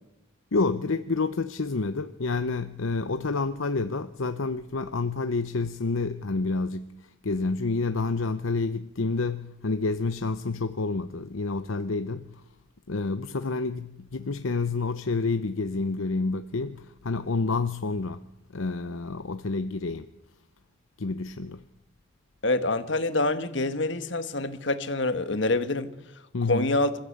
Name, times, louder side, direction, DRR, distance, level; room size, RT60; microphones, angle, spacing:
voice 1, 0.5-12.3 12.9-20.1 21.0-21.6 26.3-26.8, left 3 dB, 75° left, 0.8 m, -29 dB
voice 2, 22.4-25.9 26.5-26.9, left 2 dB, 60° left, 1.5 m, -26 dB
26.5 x 15.0 x 8.6 m
head